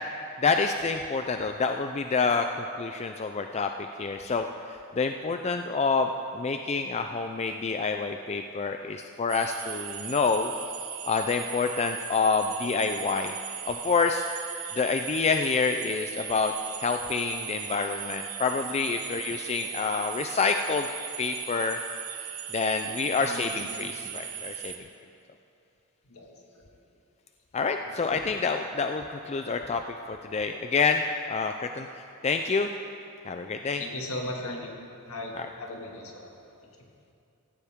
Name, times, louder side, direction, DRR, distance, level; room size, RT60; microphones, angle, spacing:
voice 1, 0.4-3.7 4.0-10.5 11.0-13.4 13.7-14.3 14.8-16.5 16.8-20.9 21.2-21.8 22.5-24.9 27.5-31.0 31.3-32.7 33.3-33.8 35.3-35.5, left 4 dB, 30° left, 6 dB, 0.4 m, -28 dB
sound 1, 9.3-24.8, right 10 dB, 70° right, 1.1 m, -38 dB
voice 2, 23.2-24.1 26.1-26.3 33.8-34.7 35.0-36.3, left 1 dB, 70° left, 0 dB, 2.1 m, -38 dB
16.0 x 16.0 x 3.7 m, 2.6 s
head